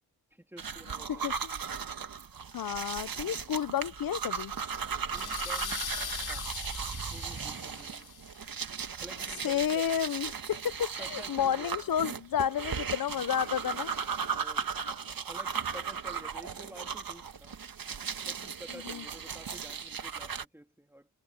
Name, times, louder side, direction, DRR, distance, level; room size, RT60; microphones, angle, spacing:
voice 1, 0.3-1.4 5.1-5.8 6.2-6.6 7.1-8.1 8.9-9.9 11.0-11.8 14.3-14.7 15.2-17.6 18.3-21.1, right 1 dB, 5° right, 2.9 m, -50 dB
sound 1, 0.6-20.4, right 6 dB, 65° right, 2.1 m, -37 dB
voice 2, 1.1-1.5 2.5-4.5 9.4-13.9 18.8-19.0, left 9 dB, 65° left, 0.7 m, -31 dB
sound 2, 3.8-8.2, right 5 dB, 50° right, 5.9 m, -45 dB
sound 3, 5.1-8.5, left 7 dB, 80° left, 3.4 m, -40 dB
wide cardioid pair, 95°, 37 cm